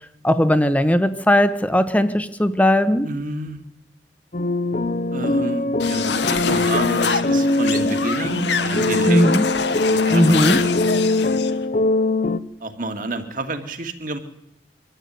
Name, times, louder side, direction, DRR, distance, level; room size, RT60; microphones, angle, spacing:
voice 1, 0.2-3.1 9.1-9.4 10.1-10.6, equal, 10° left, 10 dB, 1.0 m, -18 dB
voice 2, 3.0-3.7 5.1-9.4 9.9-10.7 12.6-14.2, right 2 dB, 50° right, 6 dB, 2.4 m, -29 dB
sound 1, 4.3-12.4, left 2 dB, 45° left, 0.8 m, -22 dB
sound 2, 5.8-11.5, left 5 dB, 80° left, 1.6 m, -25 dB
24.0 x 13.5 x 9.5 m, 0.85 s
head